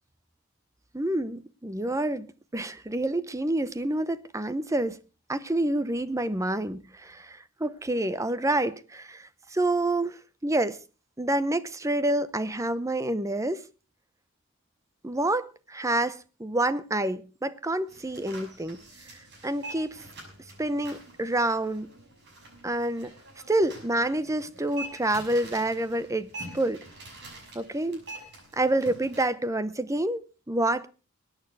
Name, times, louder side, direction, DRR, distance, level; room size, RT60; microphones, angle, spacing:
voice 1, 0.9-2.3 2.5-5.0 5.3-10.8 11.2-13.6 15.0-18.8 19.4-20.0 20.6-21.9 22.6-23.1 23.5-26.3 26.5-26.8 27.5-28.0 28.5-30.9, right 1 dB, 15° right, 0.7 m, -28 dB
sound 1, 17.9-29.2, right 2 dB, 50° right, 6.1 m, -45 dB
21.5 x 9.1 x 4.7 m
head